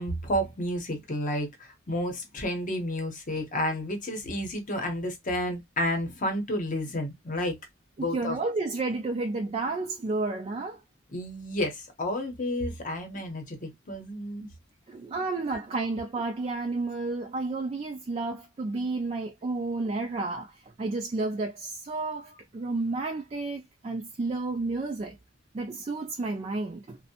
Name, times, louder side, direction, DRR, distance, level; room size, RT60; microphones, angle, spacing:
voice 1, 0.0-7.6 8.0-8.4 11.1-14.5 15.5-15.6, left 1 dB, 40° left, 0.8 m, -31 dB
voice 2, 8.0-10.8 14.9-25.2 25.5-27.0, right 3 dB, 30° right, 0.3 m, -31 dB
2.6 x 2.1 x 2.7 m
head